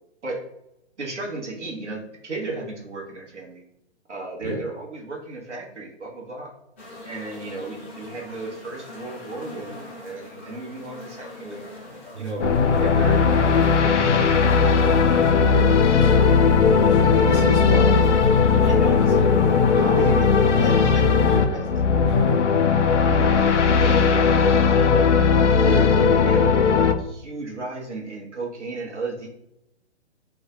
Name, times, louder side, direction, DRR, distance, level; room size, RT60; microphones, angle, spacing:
voice 1, 1.0-3.6 4.1-6.5 7.0-11.6 12.1-14.8 17.0-17.4 18.6-18.9 20.0-20.3 20.6-21.7 23.1-25.1 25.6-25.9 26.2-29.3, right 3 dB, 80° right, 0 dB, 1.0 m, -34 dB
sound 1, 6.8-21.4, left 2 dB, 10° left, 0.3 m, -41 dB
sound 2, 12.1-15.3 16.4-19.3, right 5 dB, 55° right, 0.5 m, -39 dB
sound 3, 12.4-26.9, left 5 dB, 90° left, 0.5 m, -18 dB
voice 2, 15.5-16.3 16.8-21.6 22.1-22.4 22.7-23.0 25.9-26.3, equal, 15° right, -3 dB, 0.7 m, -31 dB
2.4 x 2.2 x 3.8 m, 0.86 s
figure-of-eight pair, 125°, 34 cm